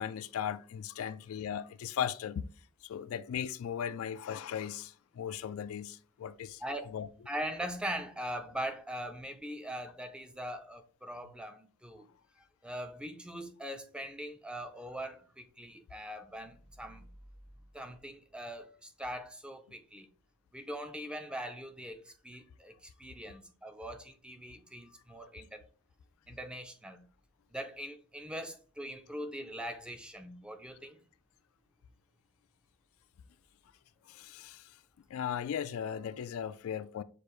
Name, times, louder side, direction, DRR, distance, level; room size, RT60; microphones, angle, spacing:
voice 1, 0.0-2.4 2.8-6.6 6.9-7.1 34.1-34.8 35.1-37.0, left 8 dB, 65° left, 0.3 m, -37 dB
voice 2, 6.6-7.0 7.3-12.1 12.6-17.1 17.7-20.1 20.5-25.6 26.3-27.0 27.5-31.0, equal, 5° right, 0.4 m, -41 dB
6.6 x 2.5 x 3.0 m
head